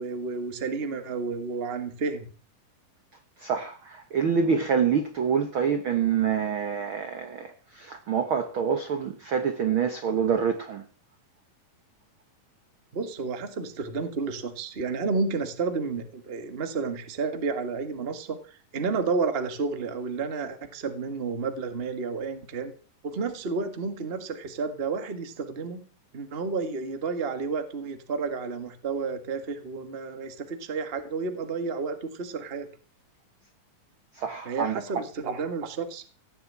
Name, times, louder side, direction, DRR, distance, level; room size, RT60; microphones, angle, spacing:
voice 1, 0.0-2.3 12.9-18.4 18.7-22.7 23.0-25.8 26.1-32.7 34.4-36.0, right 4 dB, 30° right, 1.1 m, -31 dB
voice 2, 3.4-7.5 7.8-10.8 34.2-34.8, right 7 dB, 60° right, 1.4 m, -26 dB
17.5 x 6.8 x 8.8 m
omnidirectional pair, 3.9 m